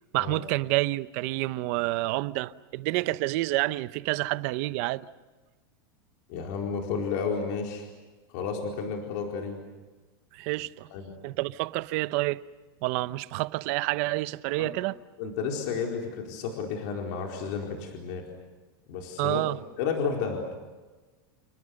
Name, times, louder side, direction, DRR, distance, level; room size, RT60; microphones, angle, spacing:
voice 1, 0.1-5.1 10.3-10.9 11.2-12.4 12.8-15.0 19.2-19.6, right 19 dB, 40° right, 0.8 m, -28 dB
voice 2, 6.3-7.9 8.3-9.6 10.9-11.1 14.6-14.7 15.2-18.2 18.9-19.4 19.8-20.4, left 5 dB, 45° left, 4.5 m, -32 dB
29.5 x 29.0 x 6.6 m
supercardioid pair, 175°, 12 cm